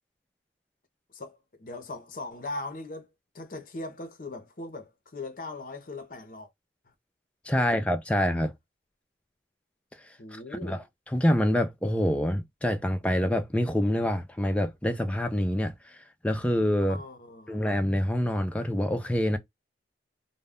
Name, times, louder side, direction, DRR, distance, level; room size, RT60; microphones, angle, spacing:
voice 1, 1.1-3.1 3.3-6.5 7.6-7.8 10.2-10.8 16.9-17.7, left 2 dB, 50° left, 0.6 m, -40 dB
voice 2, 7.5-8.5 10.3-10.8 11.1-16.0 16.2-17.0 17.5-19.4, equal, 5° left, 0.3 m, -26 dB
2.2 x 2.0 x 3.4 m
head